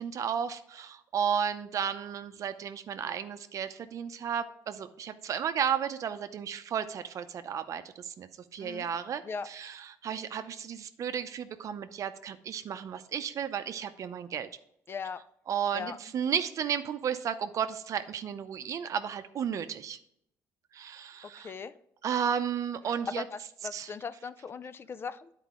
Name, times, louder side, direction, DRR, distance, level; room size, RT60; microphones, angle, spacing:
voice 1, 0.0-9.2 9.5-9.8 10.0-14.5 15.5-20.0 20.7-21.5 22.0-23.2 23.7-23.9, right 8 dB, 55° right, 10 dB, 0.6 m, -33 dB
voice 2, 14.9-15.2 15.7-16.0 21.2-21.8 23.1-25.3, left 5 dB, 35° left, 14 dB, 0.4 m, -39 dB
10.5 x 4.5 x 3.7 m, 0.74 s
cardioid pair, 100°, 7 cm